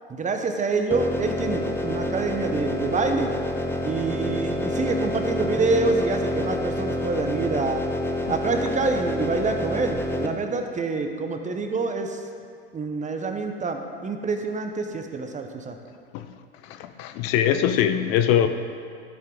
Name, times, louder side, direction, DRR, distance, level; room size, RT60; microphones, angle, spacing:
voice 1, 0.1-3.3 3.8-7.8 8.3-12.2 12.7-15.8, right 4 dB, 25° right, 5 dB, 1.0 m, -26 dB
sound 1, 0.9-10.3, left 1 dB, 5° left, 0.9 m, -28 dB
voice 2, 16.7-18.5, left 10 dB, 55° left, 8 dB, 0.7 m, -22 dB
13.0 x 7.5 x 3.9 m, 2.2 s
hypercardioid pair, 80°, 31 cm